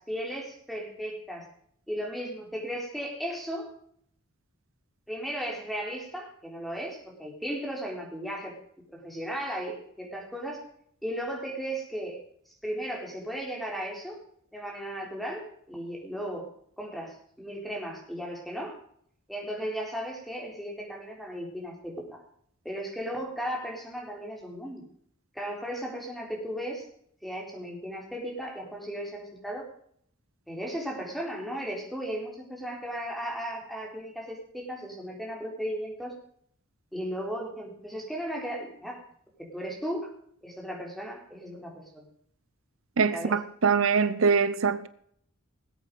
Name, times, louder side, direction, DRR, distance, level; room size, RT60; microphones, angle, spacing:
voice 1, 0.0-1.5 1.9-3.7 5.1-8.5 8.9-10.6 11.0-12.2 12.6-14.2 14.5-16.5 16.8-18.8 19.3-22.2 22.6-24.8 25.3-26.9 27.2-29.7 30.5-36.1 36.9-39.0 39.4-40.1 40.4-42.1 43.1-43.4, equal, ahead, 3.8 m, -36 dB
voice 2, 43.0-44.9, right 5 dB, 80° right, 0.7 m, -23 dB
19.0 x 8.4 x 5.3 m
head